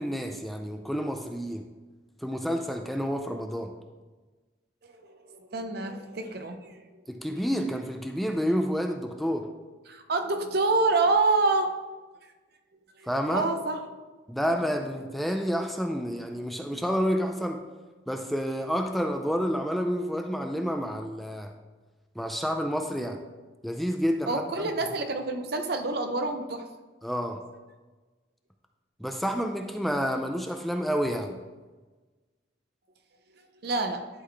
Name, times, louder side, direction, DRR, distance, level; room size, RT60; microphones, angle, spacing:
voice 1, 0.0-1.6 2.2-3.7 7.1-9.5 13.1-13.5 14.3-17.6 18.1-21.5 22.2-23.2 23.6-24.4 27.0-27.4 29.0-31.4, equal, ahead, 4 dB, 0.3 m, -29 dB
voice 2, 4.9-6.8 7.3-7.7 9.9-11.7 13.0-13.8 14.4-14.5 24.3-26.7 33.6-34.0, right 3 dB, 60° right, 7 dB, 0.6 m, -27 dB
11.0 x 3.9 x 3.3 m, 1.3 s
head